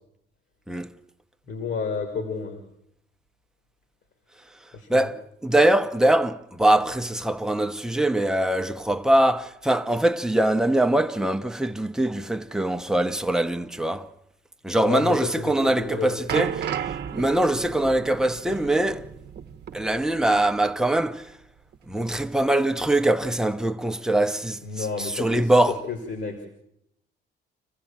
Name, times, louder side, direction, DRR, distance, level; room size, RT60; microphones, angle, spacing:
voice 1, 1.5-2.6 4.7-5.1 14.8-16.2 24.6-26.5, left 5 dB, 65° left, 2.8 m, -31 dB
voice 2, 4.9-14.1 14.6-16.7 17.1-19.1 19.7-21.3 21.9-25.8, right 1 dB, 5° right, 0.9 m, -23 dB
sound 1, 15.7-20.6 20.8-21.0 21.7-21.8, right 8 dB, 60° right, 0.9 m, -33 dB
27.0 x 15.0 x 7.4 m
cardioid pair, 90°, 20 cm